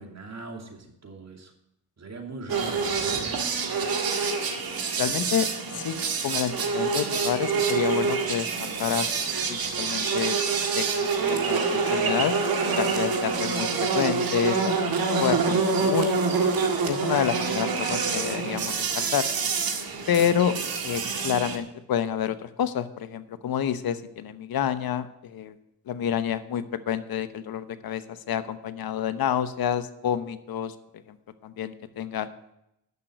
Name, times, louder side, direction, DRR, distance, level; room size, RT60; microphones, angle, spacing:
voice 1, 0.0-1.5 2.0-3.3, right 3 dB, 45° right, 3 dB, 2.6 m, -40 dB
sound 1, 2.5-21.6, right 4 dB, 65° right, 1.9 m, -26 dB
voice 2, 5.0-5.5 5.7-9.1 9.5-10.4 10.7-12.3 12.8-16.1 16.9-19.3 20.1-20.5 20.8-25.5 25.9-30.7 31.1-31.2 31.4-32.3, left 9 dB, 65° left, 12 dB, 1.0 m, -28 dB
10.5 x 6.3 x 7.9 m, 0.82 s
cardioid pair, 65°, 38 cm